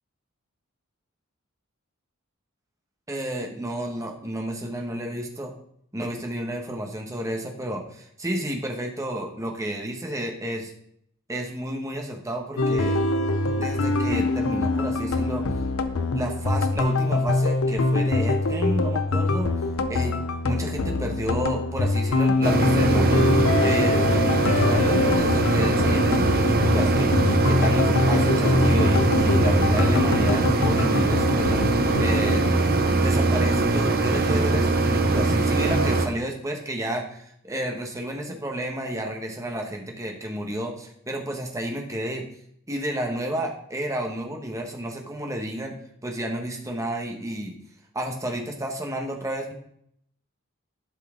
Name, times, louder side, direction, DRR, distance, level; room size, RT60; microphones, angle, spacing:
voice 1, 3.1-5.5 5.9-10.7 11.3-13.0 13.6-15.4 16.1-19.5 19.9-20.2 20.4-27.1 27.4-32.4 33.0-42.3 42.7-47.5 47.9-49.5, right 1 dB, 15° right, 1 dB, 1.3 m, -31 dB
sound 1, 12.6-32.5, left 2 dB, 85° left, 0.7 m, -24 dB
sound 2, 22.4-36.1, right 2 dB, 45° right, 0.9 m, -22 dB
11.5 x 5.6 x 3.8 m, 0.69 s
head